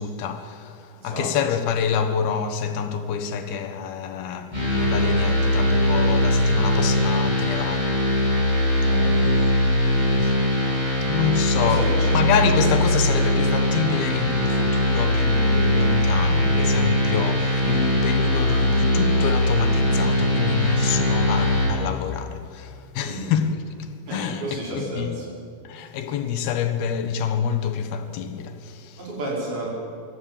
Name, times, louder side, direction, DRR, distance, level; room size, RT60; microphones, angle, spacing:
voice 1, 0.0-8.8 9.2-10.4 11.0-25.1 25.6-29.0, left 7 dB, 85° left, 3.3 m, -27 dB
sound 1, 4.5-21.7, left 1 dB, 10° right, 7.4 m, -21 dB
voice 2, 8.8-9.2 11.6-12.3 23.1-23.3 24.0-25.3 29.0-29.7, right 1 dB, 80° right, 7.4 m, -31 dB
24.0 x 14.5 x 8.8 m
omnidirectional pair, 4.3 m